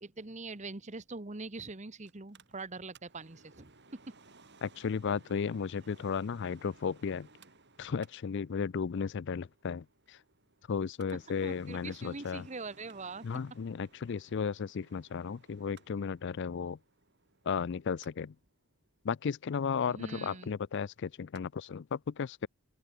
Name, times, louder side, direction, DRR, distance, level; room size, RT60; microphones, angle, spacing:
voice 1, 0.0-4.1 11.4-13.2 19.9-20.5, right 3 dB, 30° right, 1.2 m, -43 dB
Mechanical fan, 2.0-21.4 21.8-21.9, right 3 dB, 50° right, 5.8 m, -61 dB
voice 2, 4.6-7.3 7.8-10.2 10.7-12.4 13.2-16.8 17.5-18.3 19.0-22.5, left 6 dB, 50° left, 0.4 m, -34 dB
open air
head